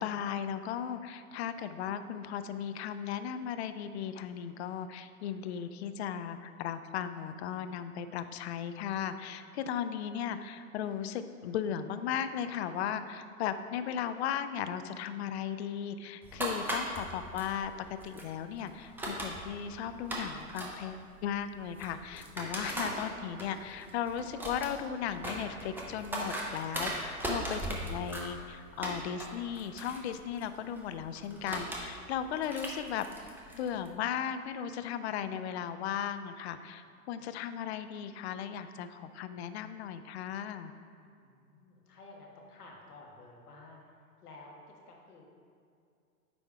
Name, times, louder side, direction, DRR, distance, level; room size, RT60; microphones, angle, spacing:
voice 1, 0.0-17.7 18.0-33.3 33.5-40.7, left 9 dB, 45° left, 10 dB, 0.5 m, -36 dB
sound 1, 16.2-33.9, right 1 dB, 5° right, 0.7 m, -40 dB
voice 2, 32.4-32.8 41.0-44.0 44.2-44.5 44.9-45.2, left 2 dB, 80° left, -1 dB, 1.6 m, -54 dB
9.1 x 3.5 x 4.7 m, 2.4 s
hypercardioid pair, 115°, 46 cm